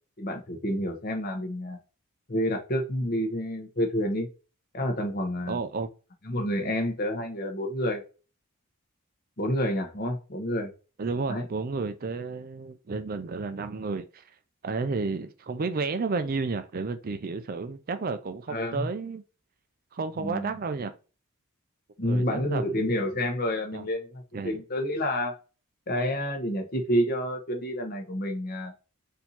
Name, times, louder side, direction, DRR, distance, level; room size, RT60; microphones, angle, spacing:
voice 1, 0.2-1.8 2.3-4.3 4.7-5.6 6.2-8.0 9.4-10.7 11.3-11.4 18.5-18.9 20.2-20.5 22.0-25.3 25.9-28.7, equal, 40° left, 1.0 m, -29 dB
voice 2, 5.5-5.9 11.0-14.2 14.6-19.2 19.9-20.9 22.0-22.9 23.7-23.9 24.3-24.6, right 4 dB, 40° right, 0.4 m, -32 dB
4.4 x 2.7 x 4.1 m
head